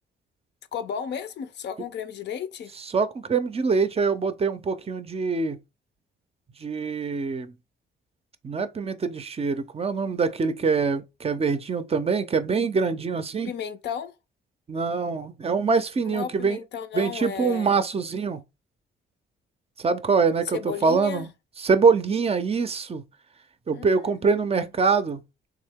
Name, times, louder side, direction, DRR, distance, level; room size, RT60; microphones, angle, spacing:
voice 1, 0.7-2.7 13.4-14.1 16.0-17.8 20.5-21.3 23.7-24.5, left 8 dB, 60° left, 0.5 m, -34 dB
voice 2, 2.9-5.6 6.6-7.5 8.4-13.5 14.7-16.6 16.9-18.4 19.8-21.3 21.6-23.0 23.7-25.2, right 5 dB, 30° right, 0.5 m, -24 dB
3.5 x 2.8 x 3.4 m
cardioid pair, 90°, 20 cm